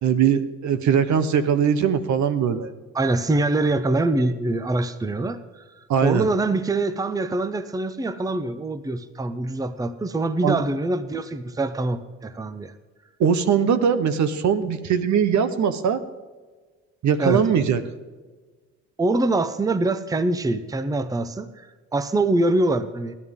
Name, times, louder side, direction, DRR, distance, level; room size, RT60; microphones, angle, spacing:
voice 1, 0.0-2.7 5.9-6.3 10.4-10.6 13.2-16.0 17.0-17.8, right 7 dB, 70° right, 12 dB, 1.0 m, -21 dB
voice 2, 2.9-5.6 6.0-12.7 17.2-17.5 19.0-21.7 21.9-23.1, right 2 dB, 10° right, 13 dB, 0.6 m, -24 dB
15.5 x 11.0 x 3.7 m, 1.4 s
cardioid pair, 90°, 30 cm